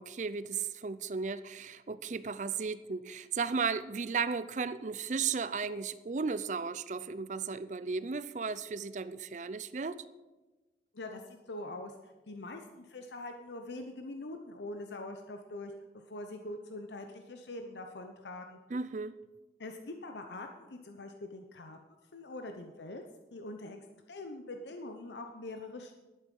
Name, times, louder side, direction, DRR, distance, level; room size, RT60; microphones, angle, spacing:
voice 1, 0.0-10.0 18.7-19.1, right 5 dB, 45° right, 15 dB, 0.5 m, -35 dB
voice 2, 10.9-15.7 16.1-18.6 19.6-21.8 22.1-23.0 23.3-23.8 24.1-25.9, left 2 dB, 80° left, 5 dB, 0.8 m, -43 dB
11.5 x 9.3 x 5.4 m, 1.2 s
head